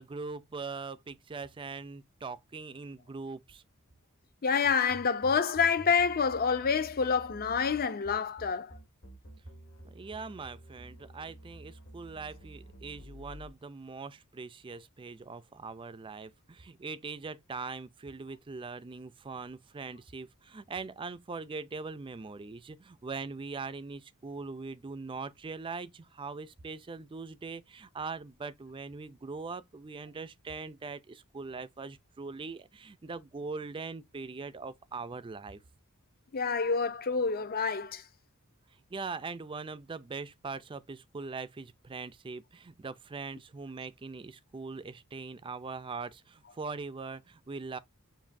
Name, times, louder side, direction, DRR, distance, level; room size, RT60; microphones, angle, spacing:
voice 1, 0.0-3.6 9.8-35.6 38.7-47.8, right 4 dB, 25° right, 0.4 m, -41 dB
voice 2, 4.4-8.8 36.3-38.0, left 5 dB, 45° left, 0.5 m, -28 dB
sound 1, 4.6-13.5, right 1 dB, 65° left, 1.7 m, -50 dB
7.2 x 2.6 x 2.6 m
head